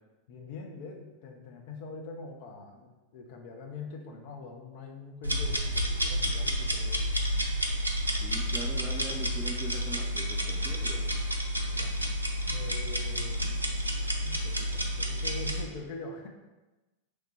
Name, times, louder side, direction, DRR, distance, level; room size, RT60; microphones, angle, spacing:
voice 1, 0.3-7.0 11.7-12.1 12.5-13.6 14.2-16.3, left 3 dB, 50° left, 3 dB, 0.5 m, -43 dB
sound 1, 5.2-15.6, equal, 85° right, 0.4 m, -30 dB
voice 2, 8.1-11.1, right 1 dB, 15° right, 0 dB, 0.6 m, -41 dB
3.1 x 2.1 x 4.2 m, 1.1 s
figure-of-eight pair, 90°, 0 cm